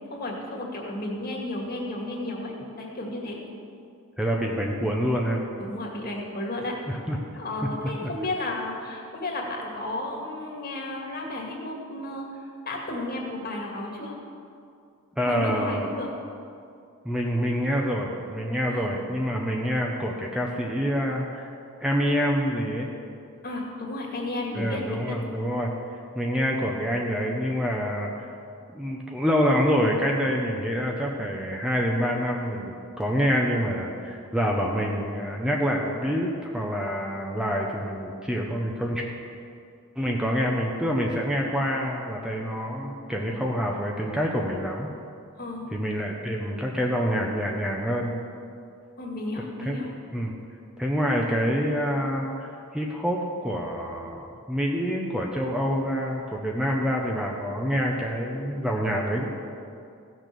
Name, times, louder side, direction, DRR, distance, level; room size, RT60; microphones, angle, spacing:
voice 1, 0.1-3.4 5.6-6.8 7.4-14.2 15.2-16.1 18.7-18.8 23.4-25.2 45.4-45.7 49.0-49.9, left 2 dB, 45° left, -1 dB, 2.1 m, -33 dB
voice 2, 4.2-5.4 6.9-7.2 8.0-8.1 15.2-15.9 17.0-21.5 21.8-22.9 24.5-25.7 26.1-28.1 28.7-39.0 40.0-44.9 45.7-48.2 49.6-49.8 50.1-50.3 50.8-59.2, equal, 5° right, -1 dB, 0.8 m, -26 dB
15.5 x 6.4 x 6.9 m, 2.5 s
head